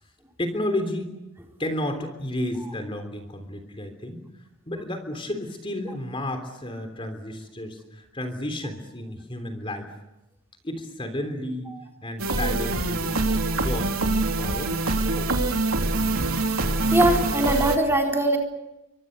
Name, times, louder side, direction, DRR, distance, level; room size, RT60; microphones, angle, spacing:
voice 1, 0.4-1.2 1.6-4.2 4.7-9.9 10.6-11.7 12.0-13.9 14.3-15.3, left 1 dB, 25° left, 7 dB, 3.4 m, -32 dB
sound 1, 12.2-17.8, right 2 dB, 85° right, 3.2 m, -24 dB
voice 2, 16.9-18.4, right 1 dB, 10° right, 1 dB, 4.1 m, -21 dB
30.0 x 25.0 x 6.6 m, 0.93 s
head